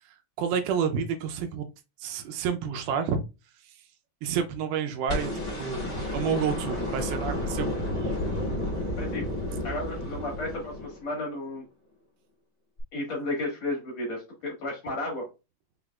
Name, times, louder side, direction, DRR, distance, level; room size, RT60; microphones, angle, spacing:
voice 1, 0.4-1.7 2.0-3.2 3.7-3.8 4.2-5.3 5.6-7.7 8.0-8.1, right 7 dB, 80° right, 2.5 m, -29 dB
sound 1, 5.1-11.3 12.8-12.9, left 1 dB, 30° left, 1.3 m, -31 dB
voice 2, 9.6-11.6 12.9-15.3, left 2 dB, 55° left, 2.4 m, -33 dB
5.8 x 3.8 x 2.3 m
omnidirectional pair, 4.5 m